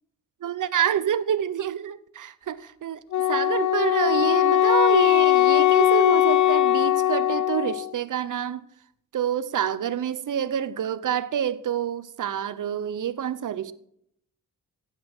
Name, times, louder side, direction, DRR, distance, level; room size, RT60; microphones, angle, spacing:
voice 1, 0.4-3.0 3.3-8.6 9.1-13.7, right 9 dB, 65° right, 0.8 m, -27 dB
Wind instrument woodwind instrument, 3.1-7.9, left 12 dB, 60° left, 0.5 m, -20 dB
15.5 x 8.6 x 6.1 m
cardioid pair, 90°, 34 cm